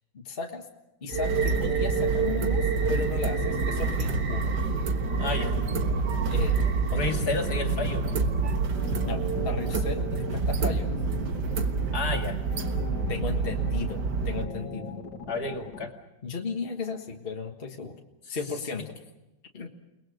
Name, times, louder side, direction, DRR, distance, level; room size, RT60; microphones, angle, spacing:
voice 1, 0.1-0.7 1.0-4.5 6.3-6.6 6.9-7.2 7.6-7.8 9.1-10.9 13.1-14.9 16.2-18.0 18.3-18.9 19.5-19.7, left 4 dB, 30° left, 2 dB, 1.7 m, -35 dB
sound 1, 1.1-15.9, left 4 dB, 70° left, 2.6 m, -39 dB
sound 2, 1.1-14.4, right 4 dB, 65° right, 2.0 m, -27 dB
voice 2, 5.2-5.5 6.9-8.2 11.9-12.4 15.3-15.9 18.3-18.4, left 3 dB, 55° left, 4 dB, 3.0 m, -31 dB
29.5 x 20.5 x 6.6 m, 0.95 s
omnidirectional pair, 2.0 m